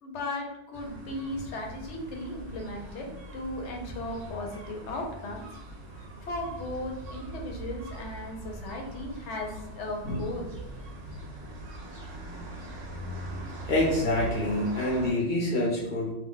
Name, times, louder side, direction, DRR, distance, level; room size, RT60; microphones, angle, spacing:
voice 1, 0.0-3.0 3.3-5.4 6.2-9.5 9.8-10.5, left 1 dB, 75° left, 1 dB, 0.9 m, -36 dB
sound 1, 0.7-15.1, right 1 dB, 65° right, 0.9 m, -41 dB
voice 2, 13.7-16.1, left 1 dB, 50° left, -4 dB, 0.7 m, -26 dB
2.3 x 2.1 x 3.7 m, 0.92 s
omnidirectional pair, 1.2 m